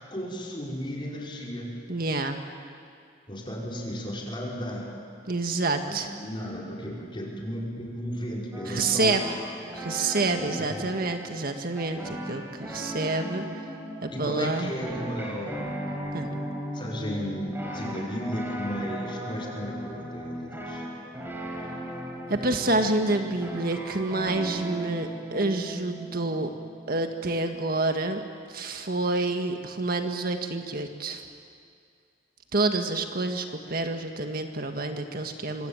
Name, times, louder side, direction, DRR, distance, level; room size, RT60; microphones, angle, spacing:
voice 1, 0.1-1.7 3.3-4.9 5.9-9.4 10.3-10.9 14.1-15.8 16.7-20.8, equal, 30° left, -3 dB, 5.5 m, -34 dB
voice 2, 1.9-2.4 5.3-6.1 8.7-9.2 9.7-13.5 14.0-14.7 16.1-16.3 22.3-26.5 26.9-28.2 28.5-31.3 32.5-35.7, right 2 dB, 55° right, 5 dB, 1.7 m, -28 dB
sound 1, 8.5-27.8, equal, 10° right, 4.4 m, -37 dB
25.5 x 25.0 x 9.0 m, 2.3 s
head